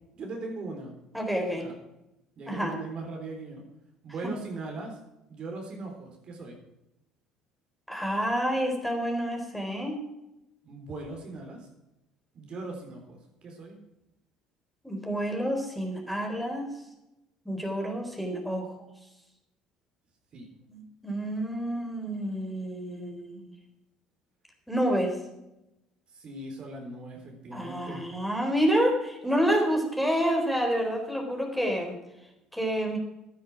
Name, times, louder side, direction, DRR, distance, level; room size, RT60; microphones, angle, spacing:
voice 1, 0.2-1.0 1.5-1.7 2.4-3.6 4.0-5.0 5.3-6.6 10.6-11.7 12.3-13.8 20.3-20.5 26.1-28.1, right 2 dB, 50° right, 1 dB, 3.8 m, -39 dB
voice 2, 1.1-1.6 2.5-2.7 7.9-10.0 14.8-16.7 17.5-18.8 20.7-23.5 24.7-25.1 27.5-32.0 32.5-33.0, equal, ahead, 2 dB, 3.9 m, -28 dB
12.0 x 10.5 x 6.1 m, 0.91 s
hypercardioid pair, 65°, 2 cm